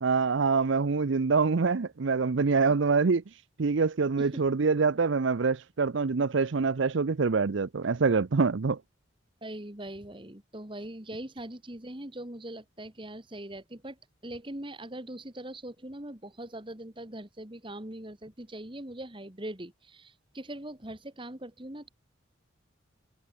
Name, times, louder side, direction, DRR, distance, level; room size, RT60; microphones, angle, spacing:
voice 1, 0.0-3.2 3.6-8.8, right 4 dB, 70° right, 0.6 m, -25 dB
voice 2, 9.4-21.9, right 1 dB, 25° right, 2.0 m, -41 dB
head